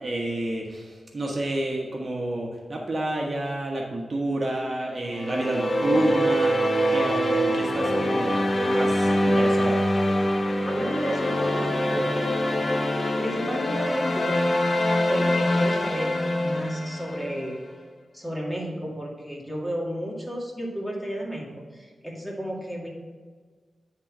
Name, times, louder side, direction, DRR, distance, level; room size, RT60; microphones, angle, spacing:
voice 1, 0.0-6.6 6.9-8.4 8.6-9.8, right 1 dB, 45° right, -1 dB, 1.2 m, -29 dB
sound 1, 5.1-17.5, equal, 40° left, 0.9 m, -24 dB
voice 2, 10.7-12.9 13.2-14.4 15.1-17.6 18.1-22.9, equal, 5° left, -2 dB, 2.0 m, -33 dB
9.5 x 3.8 x 6.0 m, 1.5 s
wide cardioid pair, 80°, 0 cm